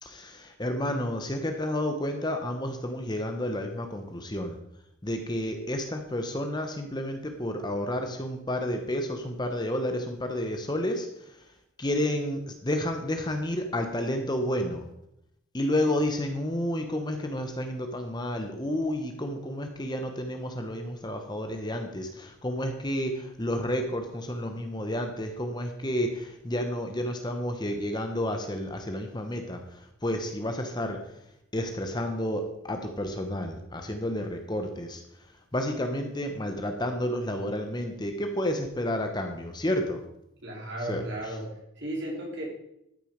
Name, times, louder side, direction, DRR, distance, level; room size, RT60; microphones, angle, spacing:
voice 1, 0.0-4.6 5.0-11.1 11.8-14.8 15.5-31.0 31.5-35.0 35.5-40.0 40.9-41.0, left 1 dB, 20° left, 5 dB, 0.9 m, -30 dB
voice 2, 40.4-42.4, right 1 dB, 55° right, -2 dB, 3.6 m, -35 dB
13.0 x 6.4 x 5.1 m, 0.81 s
head